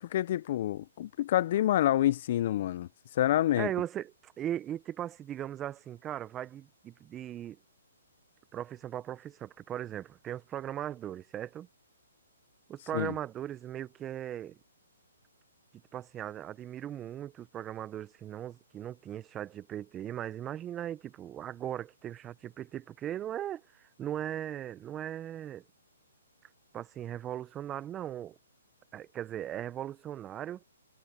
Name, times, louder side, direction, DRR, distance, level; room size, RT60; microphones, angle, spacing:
voice 1, 0.0-2.9 3.1-3.7 12.9-13.1, left 13 dB, 50° left, 0.6 m, -27 dB
voice 2, 3.5-7.6 8.5-11.7 12.7-14.6 15.9-25.6 26.7-28.4 28.9-30.6, right 11 dB, 20° right, 1.1 m, -38 dB
hypercardioid pair, 140°, 0 cm